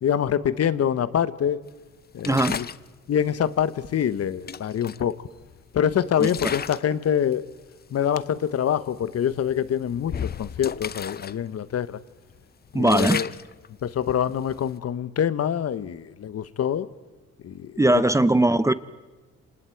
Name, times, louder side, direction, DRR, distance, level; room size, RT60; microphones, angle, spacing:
voice 1, 0.0-1.6 2.1-2.7 3.1-5.2 5.7-7.5 7.9-12.0 12.7-13.3 13.8-16.9 17.4-17.8, left 9 dB, 55° left, 15 dB, 1.0 m, -25 dB
sound 1, 2.2-2.9 4.0-4.1 4.5-5.7 6.1-6.9 7.3-7.6 8.2-8.3 8.7-8.9 9.4-11.4 11.7-11.8 12.3-14.8, left 7 dB, 30° left, 0.6 m, -34 dB
voice 2, 2.2-2.5 6.2-6.3 12.7-13.2 17.8-18.7, right 1 dB, 10° right, 15 dB, 0.7 m, -19 dB
27.5 x 26.0 x 4.6 m, 1.3 s
cardioid pair, 90°, 30 cm